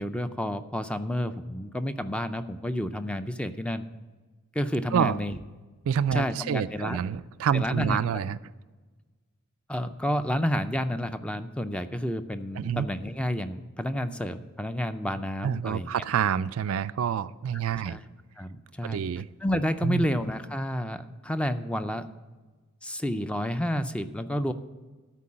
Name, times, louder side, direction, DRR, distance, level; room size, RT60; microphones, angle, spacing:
voice 1, 0.0-3.9 4.5-5.4 6.1-7.0 7.5-8.2 9.7-15.9 17.7-18.0 18.4-19.0 19.4-22.1 22.8-24.5, equal, 5° left, 10 dB, 0.4 m, -30 dB
voice 2, 5.9-8.4 12.6-12.9 15.4-18.0 18.8-19.3 19.8-20.0, right 8 dB, 70° right, 14 dB, 0.3 m, -27 dB
12.5 x 4.6 x 8.6 m, 1.3 s
head